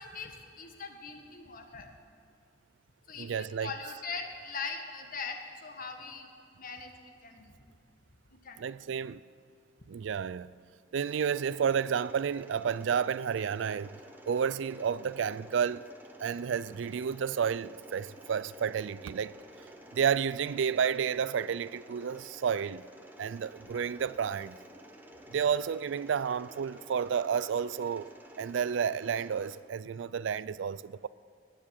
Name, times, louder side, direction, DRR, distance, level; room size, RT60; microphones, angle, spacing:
voice 1, 0.0-1.9 3.1-6.3 6.6-7.6 8.3-8.6 23.7-23.8, left 4 dB, 50° left, 1.5 m, -41 dB
voice 2, 3.2-4.0 8.6-9.2 9.9-10.5 10.9-14.0 14.3-15.9 16.2-19.4 19.9-22.8 23.2-24.6 25.3-28.1 28.4-31.1, right 7 dB, 80° right, 0.4 m, -31 dB
Mechanisms, 11.0-29.6, equal, 10° right, 1.2 m, -52 dB
19.0 x 7.6 x 8.5 m
head